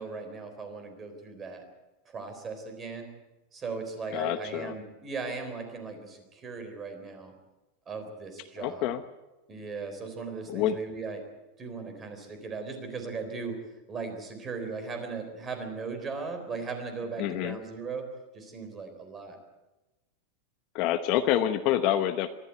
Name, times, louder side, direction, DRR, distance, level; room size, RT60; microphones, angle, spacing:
voice 1, 0.0-1.7 2.1-3.1 3.5-7.3 7.9-8.9 9.5-11.2 11.6-13.6 13.9-18.1 18.3-19.4, right 4 dB, 15° right, 6 dB, 3.7 m, -38 dB
voice 2, 4.1-4.8 8.6-9.0 10.5-10.8 17.2-17.6 20.7-22.3, left 11 dB, 40° left, 9 dB, 0.9 m, -27 dB
24.0 x 13.0 x 9.4 m, 1.1 s
supercardioid pair, 170°, 0 cm